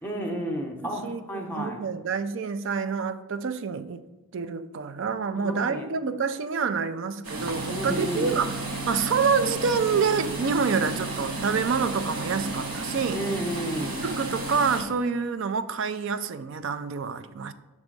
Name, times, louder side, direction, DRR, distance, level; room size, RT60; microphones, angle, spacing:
voice 1, 0.0-1.8 5.3-5.9 7.7-8.4 13.1-14.1, equal, 10° left, 0.7 m, -32 dB
voice 2, 0.8-4.0 4.3-8.6 8.9-13.2 14.0-17.5, right 5 dB, 55° right, 0.4 m, -27 dB
sound 1, 7.2-14.8, right 2 dB, 80° right, 1.2 m, -32 dB
7.2 x 3.6 x 5.2 m
head